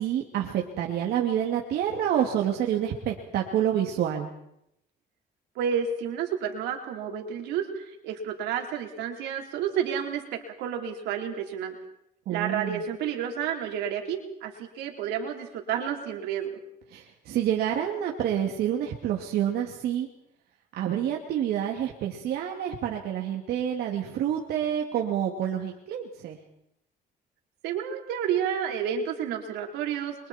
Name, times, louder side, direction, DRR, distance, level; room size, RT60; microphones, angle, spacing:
voice 1, 0.0-4.3 12.3-12.8 16.9-20.1 20.7-26.4, right 10 dB, 70° right, 0 dB, 2.7 m, -28 dB
voice 2, 5.6-11.8 12.3-16.5 27.6-30.3, right 8 dB, 90° right, 2 dB, 4.1 m, -30 dB
29.5 x 24.0 x 4.5 m, 0.79 s
cardioid pair, 110°, 17 cm